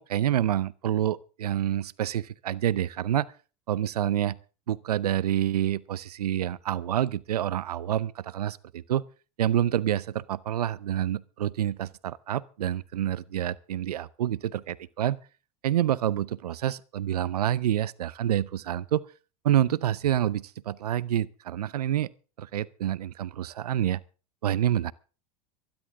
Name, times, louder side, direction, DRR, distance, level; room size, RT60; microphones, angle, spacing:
voice 1, 0.0-3.3 3.7-4.4 4.7-9.0 9.4-15.2 15.6-19.0 19.4-22.1 22.4-24.0 24.4-24.9, right 11 dB, 90° right, 0.6 m, -27 dB
24.5 x 10.5 x 3.7 m
hypercardioid pair, 105°, 19 cm